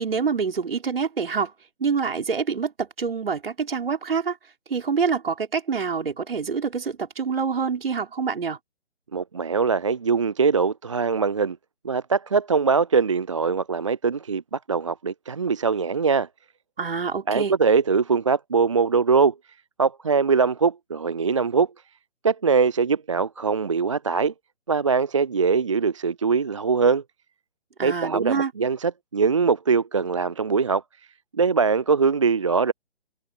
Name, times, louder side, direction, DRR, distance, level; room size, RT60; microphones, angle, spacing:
voice 1, 0.0-1.5 1.8-4.4 4.7-8.6 16.8-17.5 27.8-28.5, right 5 dB, 60° right, 5.9 m, -26 dB
voice 2, 9.1-11.6 11.8-16.3 17.3-19.3 19.8-21.7 22.2-24.3 24.7-27.0 27.8-30.8 31.3-32.7, right 5 dB, 30° right, 0.5 m, -22 dB
open air
figure-of-eight pair, 140°, 33 cm